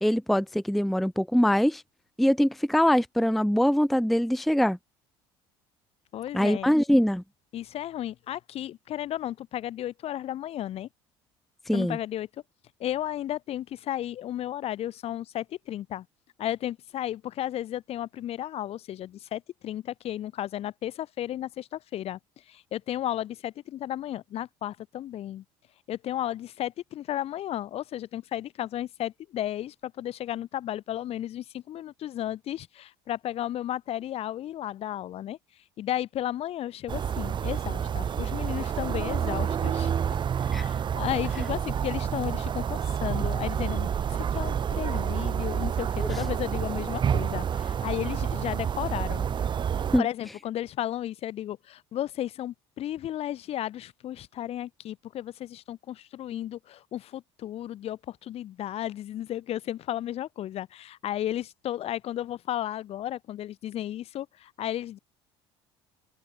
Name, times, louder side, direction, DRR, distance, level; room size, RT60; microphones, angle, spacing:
voice 1, 0.0-1.8 2.2-4.8 6.3-7.2 11.7-12.0 40.5-40.7 46.0-46.2 49.9-50.1, equal, ahead, 0.5 m, -23 dB
voice 2, 6.1-6.7 7.5-10.9 11.7-12.3 12.8-16.1 16.4-22.2 22.5-25.4 25.9-35.4 35.8-39.9 40.4-49.3 50.0-65.0, left 12 dB, 55° left, 2.4 m, -34 dB
sound 1, 36.9-50.0, right 8 dB, 40° right, 1.8 m, -29 dB
open air
supercardioid pair, 90°, 13 cm